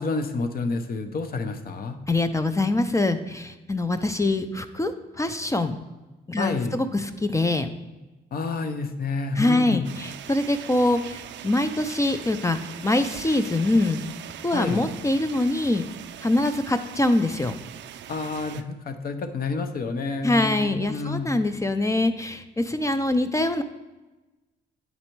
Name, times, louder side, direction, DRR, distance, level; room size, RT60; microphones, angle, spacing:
voice 1, 0.0-2.0 6.4-6.8 8.3-9.8 14.5-14.9 18.1-21.3, left 4 dB, 50° left, 8 dB, 0.7 m, -29 dB
voice 2, 2.1-5.7 6.3-7.7 9.4-12.6 12.8-14.0 14.4-15.8 16.2-17.5 20.2-23.6, left 2 dB, 15° left, 10 dB, 0.4 m, -24 dB
sound 1, 9.8-18.6, right 10 dB, 65° right, 0.4 m, -41 dB
7.8 x 4.1 x 4.5 m, 1.1 s
cardioid pair, 90°, 20 cm